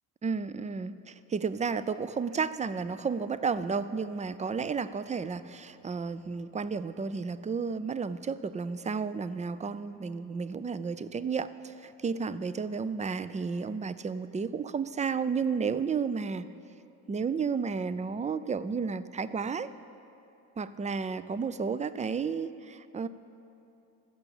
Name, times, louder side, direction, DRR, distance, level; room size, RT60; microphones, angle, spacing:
voice 1, 0.2-16.5 17.1-19.7 20.6-23.1, right 5 dB, 20° right, 14 dB, 0.3 m, -32 dB
14.5 x 6.1 x 7.1 m, 2.8 s
supercardioid pair, 65°, 45 cm